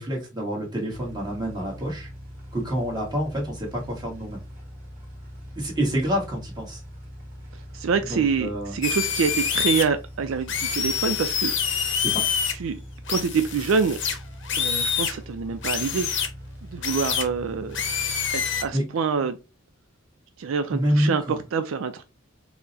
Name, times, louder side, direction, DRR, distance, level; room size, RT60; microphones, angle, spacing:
voice 1, 0.0-2.1 2.5-4.4 5.5-6.8 8.0-8.8 12.0-12.3 18.7-18.8 20.7-21.4, equal, 20° right, 1.4 m, -27 dB
sound 1, 0.9-18.7, equal, 40° right, 1.4 m, -42 dB
voice 2, 7.7-11.5 12.6-12.8 13.1-14.0 14.6-16.2 16.6-17.8 18.3-19.4 20.4-22.0, right 5 dB, 80° right, 0.4 m, -26 dB
sound 2, 8.8-9.8 10.5-12.5 13.1-15.1 15.6-16.3 16.8-17.2 17.7-18.6, left 7 dB, 65° left, 0.7 m, -26 dB
4.4 x 2.1 x 2.6 m
head